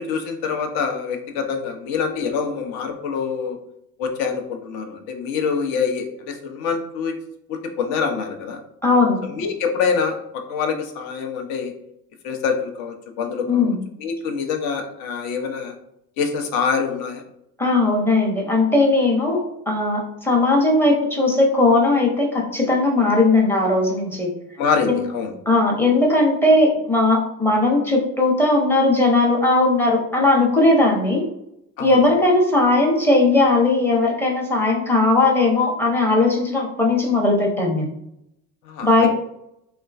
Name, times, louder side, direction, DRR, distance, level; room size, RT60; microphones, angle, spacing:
voice 1, 0.0-3.6 4.0-7.2 7.5-8.6 9.3-10.2 10.5-11.7 12.2-15.8 16.2-17.2 24.6-25.3 31.8-32.0 38.7-39.1, left 5 dB, 50° left, 4 dB, 0.7 m, -25 dB
voice 2, 8.8-9.2 13.5-13.8 17.6-19.4 19.7-24.3 24.9-25.0 25.5-31.2 31.8-37.9 38.8-39.1, left 2 dB, 5° left, -1 dB, 0.7 m, -18 dB
3.2 x 2.2 x 2.3 m, 0.79 s
figure-of-eight pair, 60°, 50 cm